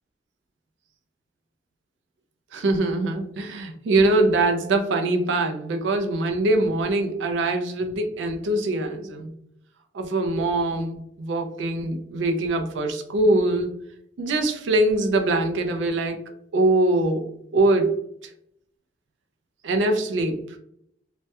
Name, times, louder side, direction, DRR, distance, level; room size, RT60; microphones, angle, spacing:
voice 1, 2.5-9.3 9.9-13.7 14.2-16.2 16.5-18.0 19.6-20.6, right 2 dB, 85° right, 5 dB, 0.4 m, -23 dB
2.2 x 2.1 x 2.7 m, 0.72 s
head